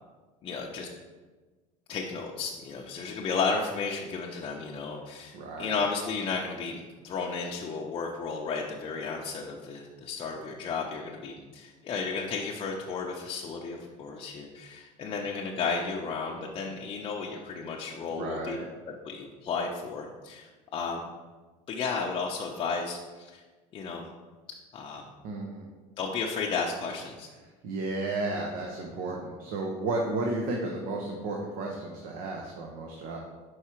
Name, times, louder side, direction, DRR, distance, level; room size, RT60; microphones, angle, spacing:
voice 1, 0.4-0.9 1.9-18.6 18.9-21.1 21.7-23.4 23.7-24.1 24.7-25.0 26.0-27.3, left 4 dB, 35° left, -2 dB, 0.6 m, -33 dB
voice 2, 5.3-5.8 18.1-18.6 25.2-25.7 27.6-33.2, right 2 dB, 70° right, 1 dB, 0.8 m, -33 dB
4.8 x 4.7 x 4.4 m, 1.3 s
cardioid pair, 140°, 15 cm